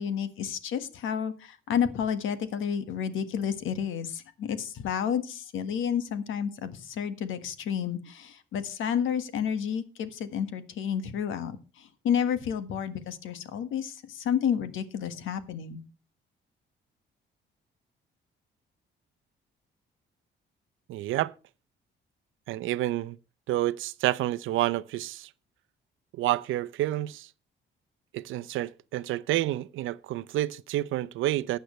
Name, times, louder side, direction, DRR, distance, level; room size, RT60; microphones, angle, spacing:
voice 1, 0.0-1.3 1.7-11.5 12.0-13.9 14.2-15.8, left 8 dB, 80° left, 1.5 m, -30 dB
voice 2, 20.9-21.3 22.5-23.2 23.5-25.3 26.2-27.3 28.1-31.6, right 15 dB, 85° right, 0.6 m, -29 dB
14.5 x 9.2 x 3.2 m
cardioid pair, 90°, 20 cm